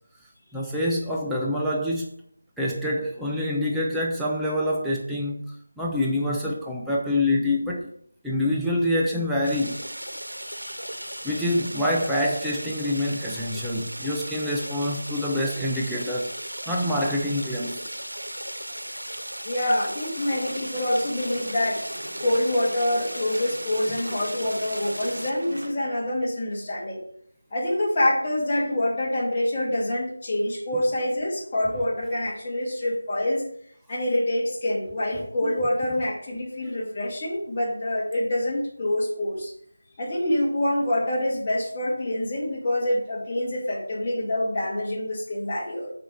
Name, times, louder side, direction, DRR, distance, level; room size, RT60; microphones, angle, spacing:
voice 1, 0.5-2.2 2.6-5.4 5.8-7.9 8.2-9.8 11.2-16.3 16.7-17.9, left 1 dB, ahead, 0.5 m, -26 dB
sound 1, 9.4-25.3, right 1 dB, 90° right, 0.8 m, -36 dB
voice 2, 10.5-11.3 19.4-21.8 22.2-27.0 27.5-33.4 33.9-39.5 40.0-45.9, left 1 dB, 25° left, 2.0 m, -26 dB
sound 2, 20.1-25.7, right 1 dB, 55° right, 1.6 m, -42 dB
6.7 x 5.2 x 4.3 m
figure-of-eight pair, 170°, 0 cm